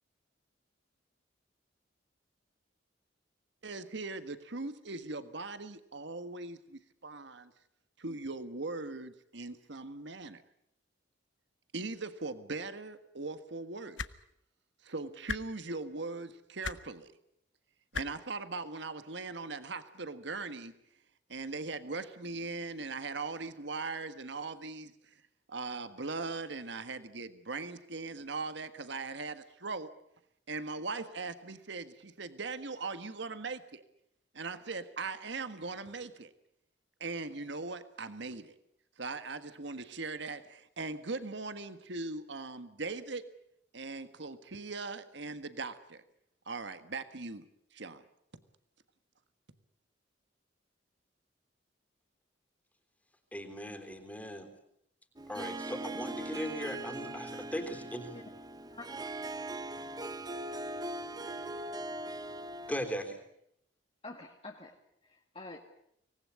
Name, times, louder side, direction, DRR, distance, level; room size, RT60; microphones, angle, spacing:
voice 1, 3.6-7.5 8.0-10.4 11.7-14.0 14.8-17.1 17.9-20.7 21.3-25.1 25.5-29.9 30.5-33.8 34.3-36.3 37.0-38.5 39.0-43.3 43.7-46.0 46.5-48.0, right 3 dB, 65° right, 11 dB, 1.6 m, -40 dB
sound 1, 14.0-14.1 15.3-15.4 16.6-16.8 17.9-18.1 19.3-19.4, left 6 dB, 75° left, 1.1 m, -35 dB
voice 2, 53.3-54.5 55.3-58.2 62.7-63.2, equal, 10° left, 5 dB, 3.5 m, -38 dB
Harp, 55.2-63.1, right 2 dB, 20° right, 0.9 m, -40 dB
voice 3, 58.7-59.1 64.0-64.8 65.0-65.6, left 2 dB, 30° left, 0 dB, 2.1 m, -47 dB
25.5 x 19.5 x 9.7 m, 0.74 s
head